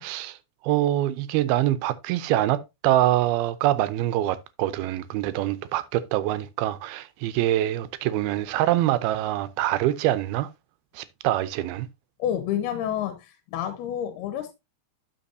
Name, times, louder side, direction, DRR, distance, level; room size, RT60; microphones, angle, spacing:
voice 1, 0.0-0.4 0.6-10.5 11.0-11.9, right 13 dB, 85° right, 2.5 m, -25 dB
voice 2, 12.2-14.5, left 10 dB, 90° left, 2.9 m, -29 dB
12.5 x 6.0 x 2.6 m
omnidirectional pair, 4.5 m